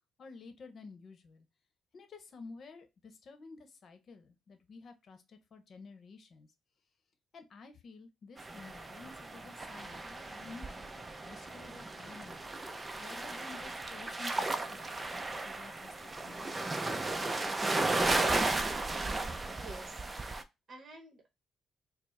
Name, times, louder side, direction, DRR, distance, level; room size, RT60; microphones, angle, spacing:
voice 1, 0.2-1.5 1.9-6.5 7.3-12.5 13.0-15.2 15.4-18.1, left 4 dB, 50° left, 7 dB, 0.9 m, -52 dB
sound 1, 8.4-20.4, right 2 dB, 25° right, 0.5 m, -35 dB
voice 2, 19.5-20.1 20.7-21.3, right 2 dB, 40° right, 3 dB, 1.1 m, -50 dB
4.4 x 2.0 x 3.2 m, 0.23 s
cardioid pair, 90°, 0 cm